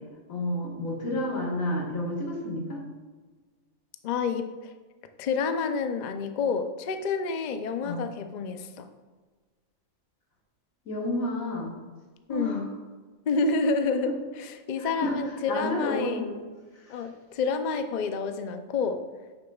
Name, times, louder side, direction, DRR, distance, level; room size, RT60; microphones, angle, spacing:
voice 1, 0.3-2.8 7.8-8.0 10.9-11.7 12.3-12.6 13.5-13.6 14.8-15.1 15.5-16.4, left 1 dB, 80° left, -2 dB, 2.0 m, -30 dB
voice 2, 4.0-4.5 5.2-8.9 12.3-12.7 13.3-16.3 16.9-19.0, left 4 dB, 60° left, 8 dB, 0.4 m, -29 dB
9.2 x 6.6 x 2.3 m, 1.4 s
omnidirectional pair, 1.4 m